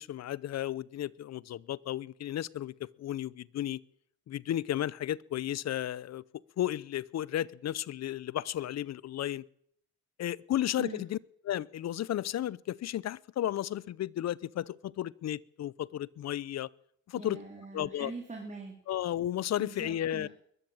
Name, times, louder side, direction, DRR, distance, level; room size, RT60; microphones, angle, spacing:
voice 1, 0.0-3.8 4.3-6.2 6.6-9.4 10.2-11.2 11.4-16.7 17.1-17.4 17.7-18.1 18.9-20.3, left 12 dB, 60° left, 0.7 m, -33 dB
voice 2, 17.2-18.7 19.6-20.3, right 3 dB, 25° right, 3.5 m, -43 dB
21.5 x 13.5 x 8.8 m
cardioid pair, 90°, 30 cm